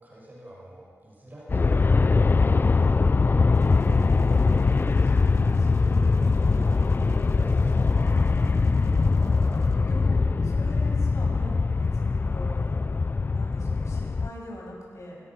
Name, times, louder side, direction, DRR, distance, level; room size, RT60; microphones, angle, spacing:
voice 1, 0.0-1.8 2.3-3.6 7.5-8.6, right 1 dB, 35° right, -4 dB, 7.1 m, -48 dB
voice 2, 1.5-2.4 4.3-7.1 9.8-12.7 13.3-15.2, left 1 dB, 65° left, -2 dB, 7.1 m, -42 dB
Aircraft, 1.5-14.3, left 4 dB, 40° left, 0.5 m, -22 dB
sound 1, 3.5-10.1, right 2 dB, 70° right, 2.4 m, -41 dB
25.5 x 22.0 x 6.3 m, 2.3 s
wide cardioid pair, 100°, 6 cm